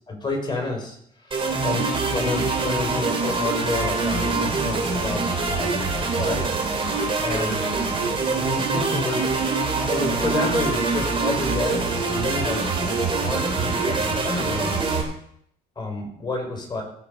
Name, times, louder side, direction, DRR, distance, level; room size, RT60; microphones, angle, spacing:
voice 1, 0.1-1.0 1.2-1.4 1.6-5.2 5.6-6.5 7.2-7.7 8.3-9.3 9.9-14.8 15.7-16.8, left 2 dB, 25° left, 2 dB, 5.0 m, -29 dB
sound 1, 1.3-15.0, right 3 dB, 30° right, 3.8 m, -24 dB
16.5 x 7.5 x 5.2 m, 0.67 s
cardioid pair, 110°, 17 cm